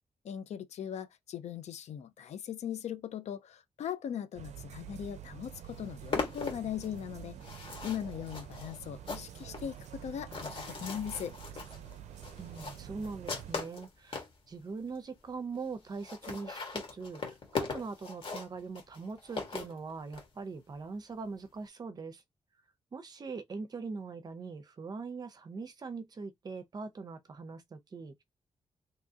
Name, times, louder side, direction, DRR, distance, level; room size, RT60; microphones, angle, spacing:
voice 1, 0.2-11.3, left 9 dB, 80° left, 0.5 m, -39 dB
sound 1, 4.3-13.5, right 10 dB, 90° right, 0.4 m, -47 dB
sound 2, 5.2-5.3 5.5-14.4 15.0-15.1 15.3-15.4 15.6-15.7 15.9-20.3, left 4 dB, 55° left, 1.3 m, -40 dB
voice 2, 12.4-22.2 22.9-28.2, right 4 dB, 35° right, 0.5 m, -42 dB
3.6 x 2.7 x 2.7 m
wide cardioid pair, 170°, 11 cm